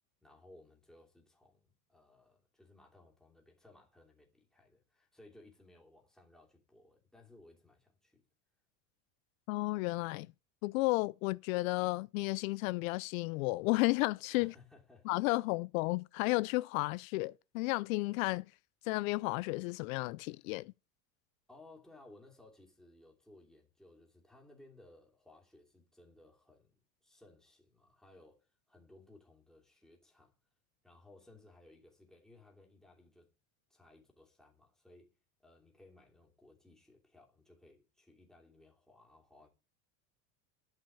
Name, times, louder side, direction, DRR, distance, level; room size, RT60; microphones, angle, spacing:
voice 1, 0.2-8.2 14.4-15.1 21.5-26.8 27.0-30.4 30.8-33.3 33.7-35.1 35.4-39.5, left 2 dB, ahead, 2.9 m, -61 dB
voice 2, 9.5-10.3 10.6-14.5 15.1-18.5 18.9-20.7, left 23 dB, 80° left, 0.6 m, -33 dB
12.0 x 5.5 x 8.5 m
cardioid pair, 165°, 40 cm